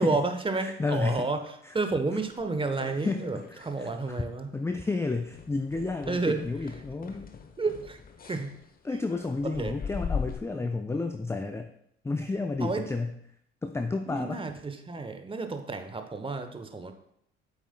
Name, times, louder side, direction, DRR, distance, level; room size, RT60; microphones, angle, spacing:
voice 1, 0.0-1.4 1.7-3.4 3.6-4.5 6.1-6.5 7.6-8.0 8.2-8.5 9.6-9.7 12.6-12.8 14.1-16.9, right 3 dB, 15° right, 7 dB, 1.0 m, -30 dB
voice 2, 0.6-1.3 1.6-1.8 2.8-4.2 4.5-7.3 8.8-11.7 12.0-13.2 13.6-14.4, left 3 dB, 10° left, 7 dB, 0.5 m, -31 dB
sound 1, 2.3-3.8 4.0-4.4 4.7-4.9 5.3-10.4, left 6 dB, 25° left, 1.0 m, -40 dB
9.2 x 8.1 x 2.2 m, 0.72 s
figure-of-eight pair, 55°, 34 cm